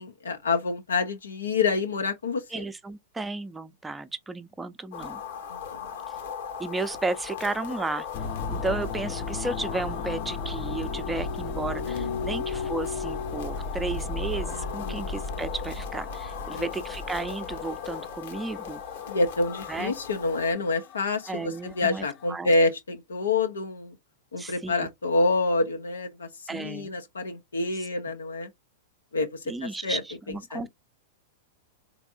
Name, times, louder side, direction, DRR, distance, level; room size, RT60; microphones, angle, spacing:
voice 1, 0.0-2.6 5.5-5.8 8.6-8.8 11.9-12.3 14.8-15.0 16.5-16.7 19.1-24.0 24.3-28.5 29.1-30.0 30.5-30.7, left 3 dB, 90° left, 0.8 m, -27 dB
voice 2, 2.5-5.2 6.6-8.1 8.5-18.8 19.7-19.9 21.3-22.5 24.4-24.9 26.5-26.9 29.5-30.7, right 3 dB, 10° right, 0.6 m, -33 dB
sound 1, 4.9-20.5, left 8 dB, 70° left, 1.2 m, -39 dB
sound 2, 8.1-22.3, left 4 dB, 40° left, 0.5 m, -35 dB
3.5 x 3.3 x 2.5 m
hypercardioid pair, 105°, 0 cm